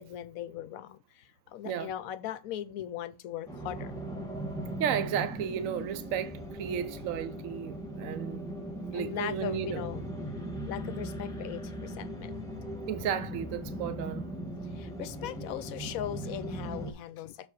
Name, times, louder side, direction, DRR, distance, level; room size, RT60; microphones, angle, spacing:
voice 1, 0.0-3.9 8.1-8.2 8.9-10.1 10.7-12.4 14.6-17.5, left 11 dB, 70° left, 0.9 m, -39 dB
sound 1, 3.5-16.9, right 1 dB, ahead, 1.4 m, -39 dB
voice 2, 4.8-8.4 8.9-9.8 12.9-14.3, right 9 dB, 65° right, 0.9 m, -33 dB
6.8 x 4.7 x 4.6 m
omnidirectional pair, 1.8 m